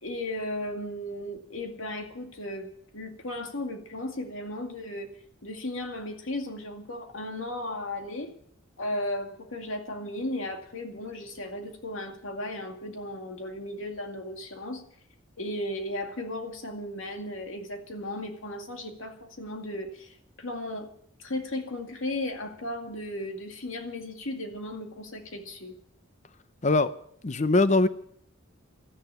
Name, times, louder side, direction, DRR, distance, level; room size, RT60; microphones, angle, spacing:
voice 1, 0.0-2.7 2.9-5.1 5.4-8.3 8.8-14.8 15.4-20.9 21.2-25.7, left 1 dB, 80° left, 2.2 m, -35 dB
voice 2, 26.6-26.9 27.2-27.9, left 2 dB, 35° left, 0.6 m, -21 dB
13.0 x 10.5 x 8.3 m
head